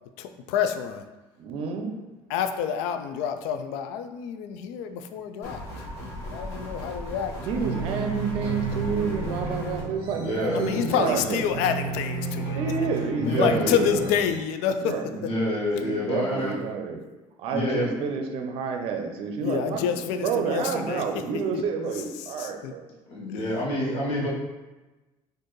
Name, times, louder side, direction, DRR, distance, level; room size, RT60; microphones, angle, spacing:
voice 1, 0.2-1.0 2.3-5.6 6.3-7.7 10.5-12.6 13.3-15.0 19.4-21.0 21.5-21.6 22.4-22.7 23.3-23.4, left 8 dB, 85° left, 9 dB, 0.4 m, -28 dB
voice 2, 1.4-1.9 7.4-11.7 12.6-14.0 14.8-15.2 15.7-17.0 17.4-22.8, right 5 dB, 55° right, 4 dB, 0.6 m, -29 dB
sound 1, 5.4-9.8, left 1 dB, 25° left, 1.3 m, -37 dB
sound 2, 7.5-14.4, right 4 dB, 25° right, 0.9 m, -33 dB
voice 3, 10.1-11.2 13.2-14.1 15.1-16.6 17.5-17.9 23.1-24.3, left 1 dB, 60° left, -4 dB, 1.1 m, -28 dB
4.4 x 2.5 x 3.1 m, 1.1 s
cardioid pair, 150°, 11 cm